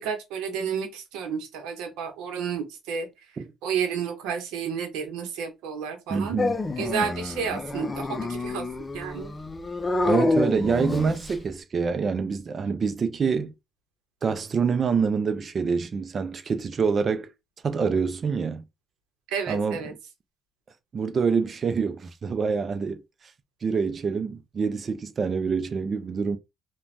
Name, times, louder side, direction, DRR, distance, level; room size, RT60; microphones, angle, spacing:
voice 1, 0.0-3.1 3.6-6.4 6.8-8.7 8.9-9.3 19.3-19.9, right 7 dB, 85° right, 0.8 m, -31 dB
voice 2, 6.1-6.5 10.1-13.5 14.2-17.3 17.6-18.6 19.5-20.0 20.9-23.0 23.6-26.4, right 5 dB, 45° right, 0.5 m, -26 dB
Dog, 6.4-11.5, left 2 dB, 25° left, 0.5 m, -28 dB
2.5 x 2.2 x 3.2 m
cardioid pair, 85°, 0 cm